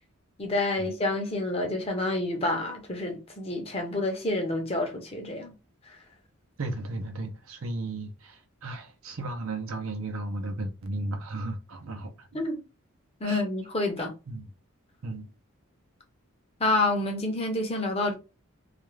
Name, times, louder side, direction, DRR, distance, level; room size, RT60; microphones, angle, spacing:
voice 1, 0.4-5.5 12.3-12.6 13.2-14.1 16.6-18.1, left 2 dB, 25° left, 0.6 m, -28 dB
voice 2, 6.6-12.4 13.2-13.4 14.3-14.4 15.0-15.3, right 2 dB, 75° right, 0.6 m, -35 dB
2.4 x 2.3 x 3.1 m
head